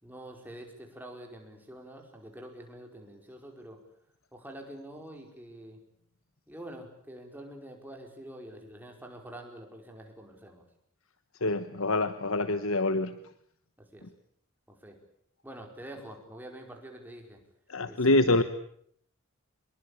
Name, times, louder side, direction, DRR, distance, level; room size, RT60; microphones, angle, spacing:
voice 1, 0.0-3.8 4.3-5.8 6.5-10.6 13.8-14.1 14.7-15.0 15.4-17.4 17.9-18.4, right 1 dB, 10° right, 2 dB, 4.9 m, -46 dB
voice 2, 11.4-13.2 17.7-18.4, left 2 dB, 70° left, 11 dB, 1.2 m, -25 dB
25.5 x 22.0 x 8.7 m, 0.67 s
head